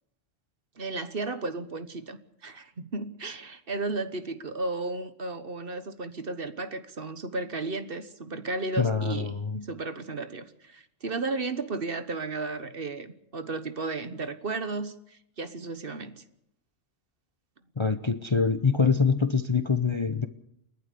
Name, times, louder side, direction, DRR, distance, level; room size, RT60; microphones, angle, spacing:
voice 1, 0.8-16.2, right 3 dB, 50° right, 11 dB, 1.4 m, -34 dB
voice 2, 8.8-9.6 17.8-20.3, left 5 dB, 25° left, 10 dB, 0.7 m, -25 dB
29.5 x 11.5 x 8.4 m, 0.77 s
omnidirectional pair, 1.3 m